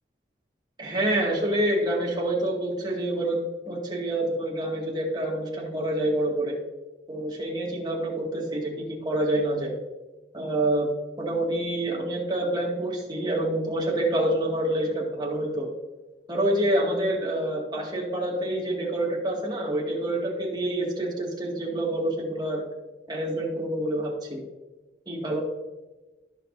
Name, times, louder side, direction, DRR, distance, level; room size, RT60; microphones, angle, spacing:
voice 1, 0.8-3.4 3.7-6.6 7.1-8.7 9.0-9.7 10.3-10.9 11.2-15.7 16.3-22.6 23.1-24.4 25.1-25.4, right 1 dB, 25° right, -2 dB, 2.1 m, -27 dB
15.0 x 6.1 x 2.7 m, 1.2 s
head